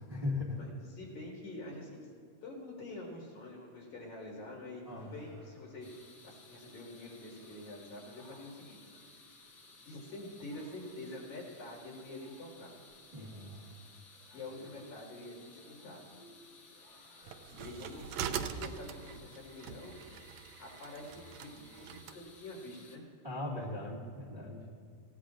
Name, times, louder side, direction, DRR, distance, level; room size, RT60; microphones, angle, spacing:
voice 1, 0.0-0.6 4.8-5.1 13.1-13.6 23.2-24.8, left 2 dB, 15° right, -5 dB, 1.3 m, -38 dB
voice 2, 0.6-2.1 2.4-5.9 6.2-8.8 9.8-12.7 14.3-16.0 17.5-19.9 20.6-23.0, left 2 dB, 65° left, -3 dB, 5.7 m, -46 dB
sound 1, 4.8-17.5, equal, 80° left, 6.9 m, -63 dB
sound 2, 5.8-23.0, left 3 dB, 40° left, 1.6 m, -58 dB
sound 3, 17.3-22.2, right 8 dB, 75° right, 1.8 m, -42 dB
26.5 x 16.0 x 2.5 m, 2.2 s
omnidirectional pair, 3.7 m